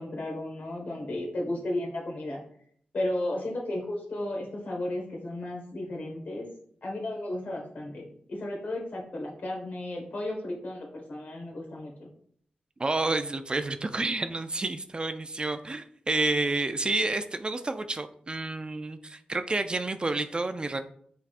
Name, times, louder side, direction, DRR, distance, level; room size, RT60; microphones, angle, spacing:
voice 1, 0.0-2.4 2.9-6.5 6.8-12.1, left 1 dB, 65° left, -1 dB, 1.4 m, -34 dB
voice 2, 12.8-20.8, right 2 dB, 30° right, 10 dB, 0.3 m, -29 dB
5.8 x 3.5 x 2.4 m, 0.62 s
cardioid pair, 65°, 3 cm